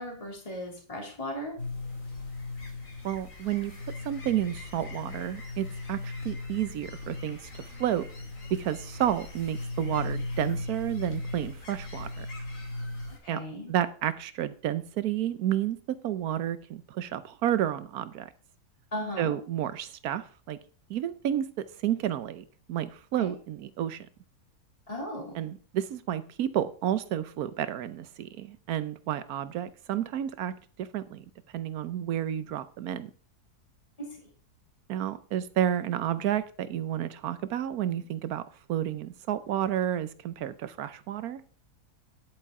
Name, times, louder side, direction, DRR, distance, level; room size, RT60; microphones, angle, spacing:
voice 1, 0.0-1.6 13.2-13.7 18.9-19.4 23.2-23.3 24.9-25.4 34.0-34.1, equal, 20° left, 2.9 m, -36 dB
sound 1, 1.6-13.2, left 2 dB, 55° left, 2.8 m, -38 dB
voice 2, 3.0-3.7 4.0-8.1 8.5-12.3 13.3-13.4 13.7-18.3 19.2-20.6 20.9-24.1 25.3-30.5 30.8-31.2 31.5-33.1 34.9-38.4 38.7-41.4, right 11 dB, 75° right, 1.2 m, -31 dB
10.5 x 8.6 x 3.6 m
omnidirectional pair, 1.7 m